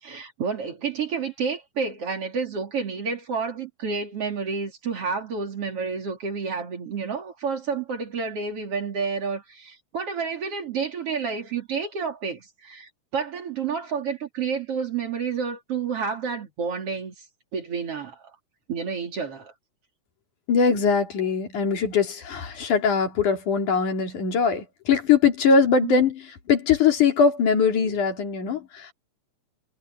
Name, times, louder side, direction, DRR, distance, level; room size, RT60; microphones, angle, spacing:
voice 1, 0.0-17.2 17.5-18.4 18.7-19.5 25.8-26.0, right 5 dB, 50° right, 3.8 m, -30 dB
voice 2, 20.5-26.2 26.5-28.9, left 5 dB, 90° left, 4.7 m, -21 dB
omnidirectional pair, 3.4 m